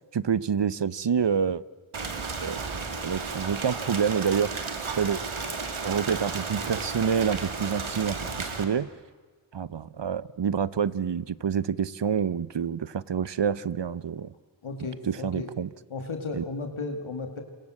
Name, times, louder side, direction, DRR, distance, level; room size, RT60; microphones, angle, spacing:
voice 1, 0.1-1.6 2.4-2.6 3.0-4.5 4.9-5.2 5.8-8.9 9.5-14.3 15.1-15.7 16.3-16.4, right 7 dB, 60° right, 19 dB, 0.8 m, -27 dB
Rain, 1.9-8.6, right 4 dB, 90° right, 2.8 m, -33 dB
voice 2, 14.6-15.5 15.9-17.4, left 3 dB, 85° left, 5 dB, 2.4 m, -34 dB
29.0 x 22.0 x 7.7 m, 1.4 s
cardioid pair, 45°, 47 cm